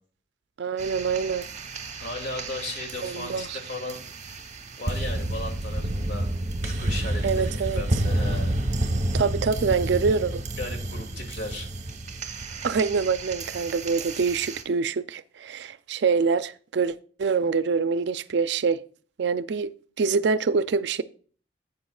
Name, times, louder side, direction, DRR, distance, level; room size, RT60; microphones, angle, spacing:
voice 1, 0.6-1.5 3.0-3.6 7.2-7.8 9.1-10.4 12.6-18.8 19.2-21.0, right 5 dB, 65° right, 0.4 m, -25 dB
sound 1, 0.8-14.6, right 1 dB, 35° right, 1.0 m, -30 dB
voice 2, 2.0-4.3 4.8-6.3 6.6-8.6 10.6-11.7, left 2 dB, 70° left, 2.5 m, -36 dB
10.5 x 8.5 x 2.3 m
head